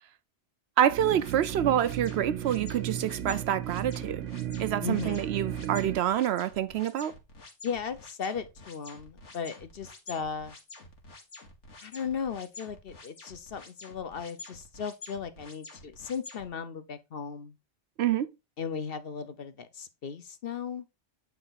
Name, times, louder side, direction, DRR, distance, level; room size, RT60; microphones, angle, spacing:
voice 1, 0.8-4.2 4.6-7.1 18.0-18.3, right 10 dB, 70° right, 0.8 m, -27 dB
sound 1, 0.9-6.0, right 10 dB, 85° right, 1.0 m, -35 dB
sound 2, 1.2-16.5, left 3 dB, 80° left, 2.1 m, -49 dB
voice 2, 4.8-5.3 7.6-10.5 11.8-17.6 18.6-20.8, left 6 dB, 55° left, 1.0 m, -36 dB
8.8 x 4.6 x 4.0 m
omnidirectional pair, 1.2 m